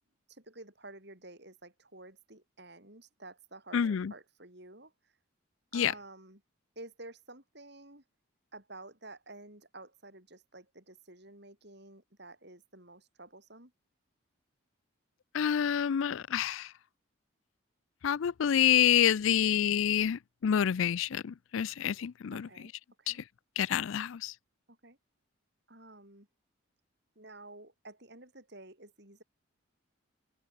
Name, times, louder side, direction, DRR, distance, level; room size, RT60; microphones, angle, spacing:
voice 1, 0.3-4.9 5.7-6.4 6.7-8.0 8.5-13.7 22.3-22.7 23.0-23.2 24.7-25.0 25.7-26.3 27.1-29.2, right 2 dB, 50° right, 6.7 m, -51 dB
voice 2, 3.7-4.1 5.7-5.9 15.3-16.7 18.0-22.5 23.1-23.2 23.6-24.3, left 9 dB, 70° left, 0.4 m, -28 dB
open air
head